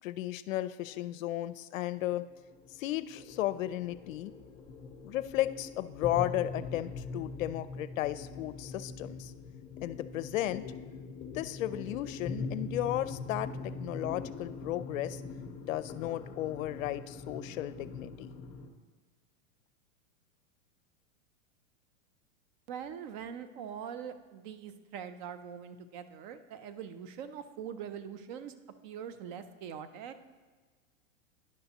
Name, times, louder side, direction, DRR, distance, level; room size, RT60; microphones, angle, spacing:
voice 1, 0.0-2.2 2.7-4.3 5.0-9.3 9.8-10.6 11.2-15.2 15.7-18.3, left 14 dB, 75° left, 14 dB, 0.5 m, -34 dB
sound 1, 2.0-18.7, left 3 dB, 20° left, 0.8 m, -43 dB
voice 2, 22.7-28.6 28.8-30.2, right 8 dB, 35° right, 11 dB, 0.5 m, -43 dB
10.5 x 5.7 x 2.8 m, 1.4 s
hypercardioid pair, 135°, 40 cm